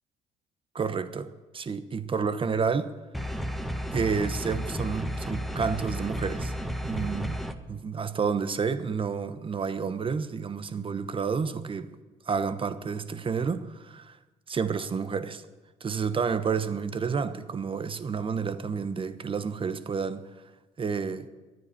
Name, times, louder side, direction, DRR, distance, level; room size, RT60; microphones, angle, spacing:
voice 1, 0.7-2.9 3.9-6.5 6.8-7.4 7.7-11.9 12.3-14.2 14.5-15.4 15.8-20.2 20.8-21.3, right 5 dB, 35° right, 1.0 m, -30 dB
sound 1, 3.1-7.5, equal, ahead, 1.2 m, -32 dB
11.0 x 9.6 x 8.6 m
supercardioid pair, 60°, 15 cm